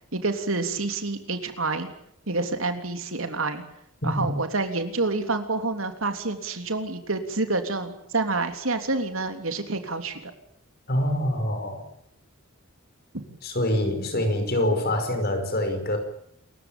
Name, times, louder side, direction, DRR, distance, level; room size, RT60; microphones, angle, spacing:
voice 1, 0.1-1.9 2.3-3.6 4.0-10.3, right 3 dB, 70° right, 7 dB, 3.3 m, -28 dB
voice 2, 4.0-4.4 10.9-11.8 13.4-16.0, left 1 dB, 50° left, 7 dB, 5.6 m, -25 dB
28.0 x 15.5 x 9.1 m, 0.73 s
head